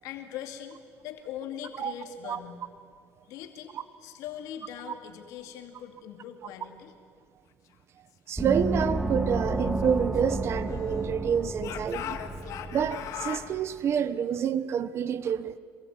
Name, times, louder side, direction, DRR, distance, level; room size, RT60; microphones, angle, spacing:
voice 1, 0.0-2.6 3.3-6.9, left 9 dB, 85° left, 2.4 m, -41 dB
voice 2, 8.3-12.2 12.7-15.5, right 8 dB, 50° right, 1.1 m, -28 dB
Gong, 8.4-13.6, right 2 dB, 10° right, 1.8 m, -32 dB
Speech / Shout, 9.6-11.1 11.6-13.5, left 10 dB, 70° left, 1.9 m, -39 dB
26.0 x 22.5 x 9.4 m
cardioid pair, 125°, 6 cm